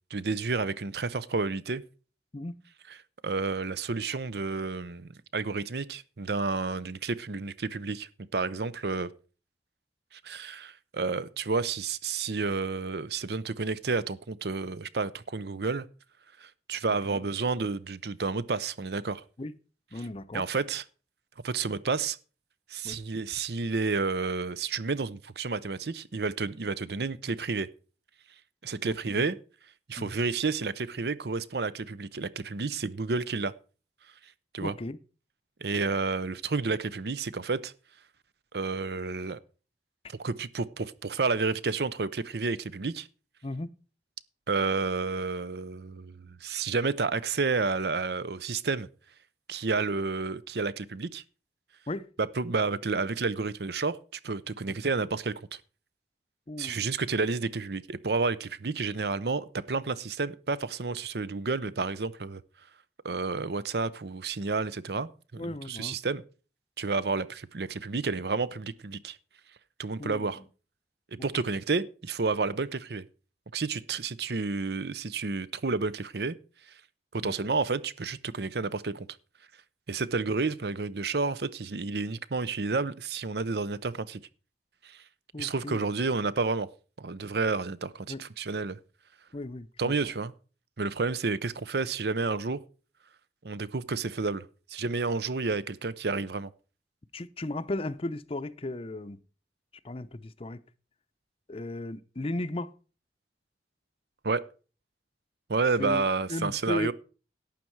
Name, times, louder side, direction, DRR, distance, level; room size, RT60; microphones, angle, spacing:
voice 1, 0.1-1.8 3.2-9.1 10.1-15.9 16.4-19.2 20.0-20.1 20.3-20.8 21.4-22.2 22.7-27.7 28.6-29.4 29.9-33.5 34.5-34.8 35.6-37.7 38.5-39.4 40.1-43.1 44.5-48.9 49.5-51.2 52.2-55.6 56.6-62.4 63.0-66.2 66.8-69.2 69.8-70.4 71.1-73.0 73.5-76.4 76.7-76.8 77.1-79.1 79.9-84.2 84.8-85.0 85.4-86.7 87.0-88.8 89.8-90.3 90.8-92.6 93.4-96.5 104.2-104.4 105.5-106.9, right 4 dB, 65° right, 0.7 m, -30 dB
voice 2, 19.9-20.5 22.8-23.0 28.8-29.3 30.0-30.2 34.6-35.0 43.4-43.7 51.9-52.1 56.5-56.9 65.4-66.0 70.0-70.5 77.2-77.3 85.3-85.8 88.1-88.2 89.3-89.9 97.1-99.2 99.8-100.6 101.5-102.7 105.8-106.0 106.3-106.9, left 2 dB, 30° left, 0.6 m, -35 dB
12.0 x 8.6 x 4.6 m
head